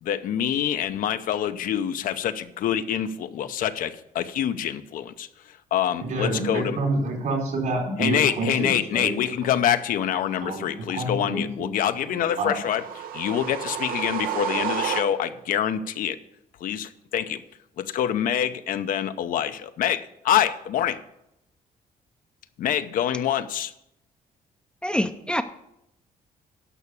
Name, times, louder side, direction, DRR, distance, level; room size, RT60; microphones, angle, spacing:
voice 1, 0.0-5.3 5.7-6.8 8.0-12.8 13.1-16.2 16.6-17.4 17.8-21.0 22.6-23.7, left 10 dB, 70° left, 11 dB, 0.7 m, -26 dB
voice 2, 6.0-9.1 10.4-11.7 12.1-12.6, right 2 dB, 70° right, 0 dB, 4.3 m, -28 dB
sound 1, 12.3-15.5, right 8 dB, 90° right, 0.9 m, -31 dB
voice 3, 24.8-25.4, left 1 dB, 5° left, 7 dB, 0.5 m, -25 dB
11.0 x 6.0 x 6.9 m, 0.81 s
cardioid pair, 130°, 15 cm